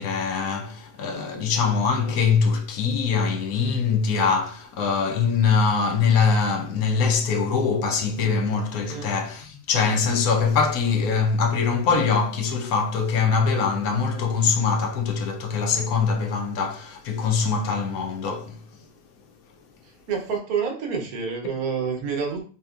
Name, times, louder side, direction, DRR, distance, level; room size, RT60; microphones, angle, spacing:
voice 1, 0.0-18.6, left 5 dB, 80° left, 1.1 m, -23 dB
voice 2, 19.8-22.4, right 6 dB, 85° right, 1.3 m, -28 dB
4.1 x 2.8 x 2.4 m
omnidirectional pair, 1.5 m